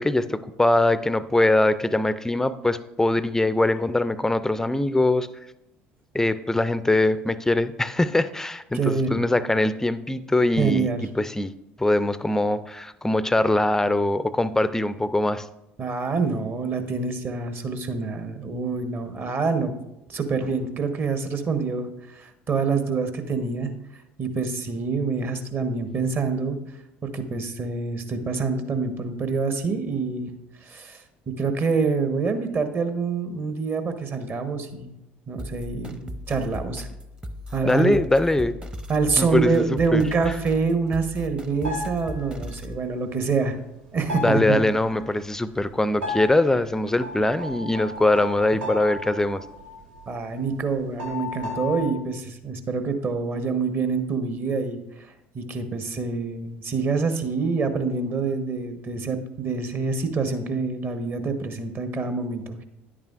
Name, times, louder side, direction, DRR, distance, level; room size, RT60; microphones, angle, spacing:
voice 1, 0.0-5.3 6.1-10.9 11.2-11.5 11.8-15.5 37.6-38.6 39.2-39.6 39.9-40.3 44.2-49.4, left 2 dB, 10° left, 15 dB, 0.4 m, -22 dB
voice 2, 8.7-9.2 10.6-11.0 15.8-19.7 20.1-23.7 24.2-26.6 27.0-30.3 30.6-31.0 31.3-35.0 35.3-36.9 37.5-37.9 38.9-43.6 43.9-44.6 50.1-54.8 55.3-62.6, right 4 dB, 35° right, 8 dB, 1.0 m, -26 dB
sound 1, 35.4-42.8, left 1 dB, 15° right, 0.7 m, -37 dB
sound 2, 41.6-42.6 42.9-43.8 44.1-45.2 46.0-50.3 50.6-50.7 51.0-51.9, left 2 dB, 75° right, 1.3 m, -35 dB
10.5 x 8.7 x 2.4 m, 0.89 s
figure-of-eight pair, 60°, 6 cm